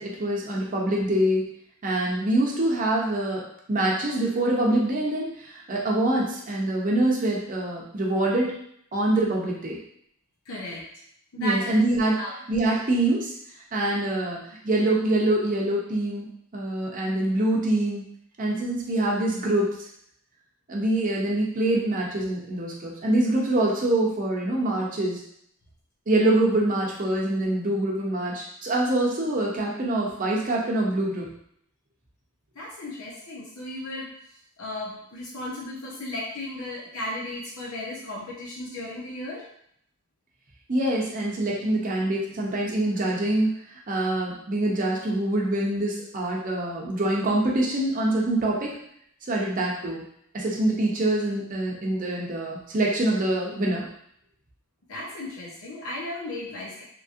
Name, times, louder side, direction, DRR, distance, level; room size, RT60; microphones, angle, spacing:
voice 1, 0.0-1.5 1.8-8.5 8.9-9.8 11.4-12.2 12.5-13.3 13.7-16.3 16.5-18.0 18.4-19.7 20.7-25.2 26.1-31.3 40.7-43.6 43.9-48.7 49.3-50.0 50.3-53.9, right 1 dB, 40° right, -3 dB, 0.7 m, -25 dB
voice 2, 10.5-10.8 11.3-11.8 12.2-12.4 32.6-34.1 34.6-39.4 54.9-56.8, left 1 dB, 90° left, -4 dB, 0.7 m, -35 dB
3.0 x 2.7 x 2.5 m, 0.68 s
head